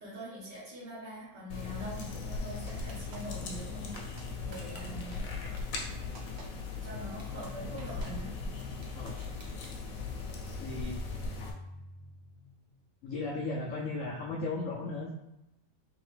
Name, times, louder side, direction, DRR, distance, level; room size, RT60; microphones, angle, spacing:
voice 1, 0.0-4.0 4.4-5.2 6.8-8.3, right 1 dB, 70° right, -8 dB, 1.9 m, -43 dB
sound 1, 1.5-11.5, left 4 dB, 60° left, 1.0 m, -39 dB
sound 2, 2.7-3.4 3.9-4.2 4.5-4.8 5.1-5.2 5.6-5.9 6.1-6.5 6.8-6.9 7.2-7.5 7.8-8.1 8.6-9.8, right 3 dB, 55° right, 0.8 m, -51 dB
sound 3, 7.3-12.9, left 3 dB, 40° left, 0.5 m, -48 dB
voice 2, 8.9-9.2 10.6-11.0 13.0-15.1, left 3 dB, 90° left, -1 dB, 0.7 m, -36 dB
3.9 x 3.4 x 3.2 m, 0.93 s
omnidirectional pair, 1.9 m